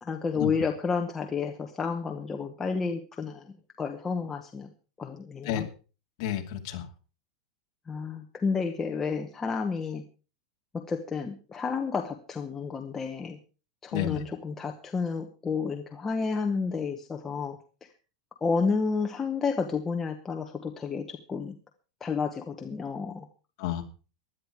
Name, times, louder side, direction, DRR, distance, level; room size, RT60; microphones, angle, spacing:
voice 1, 0.0-4.7 5.0-5.7 7.9-10.0 10.7-13.4 13.8-17.6 18.4-21.6 22.0-23.3, left 5 dB, 10° left, 3 dB, 0.9 m, -31 dB
voice 2, 6.2-6.9 13.9-14.2 23.6-23.8, left 10 dB, 40° left, 2 dB, 2.7 m, -31 dB
16.5 x 11.5 x 4.8 m, 0.37 s
supercardioid pair, 175°, 3 cm